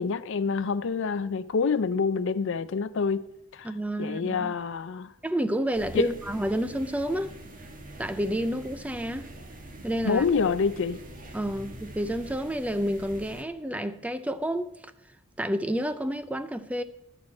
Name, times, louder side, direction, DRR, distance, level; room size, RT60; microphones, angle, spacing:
voice 1, 0.0-3.3 3.5-3.7 4.0-5.1 5.9-6.1 10.0-11.0, left 5 dB, 60° left, 0.5 m, -27 dB
voice 2, 3.6-4.6 5.2-7.4 8.0-9.3 9.8-10.3 11.3-14.7 15.4-16.8, equal, 5° right, 0.4 m, -29 dB
sound 1, 5.7-13.4, right 1 dB, 40° right, 1.3 m, -44 dB
11.0 x 4.6 x 7.4 m
head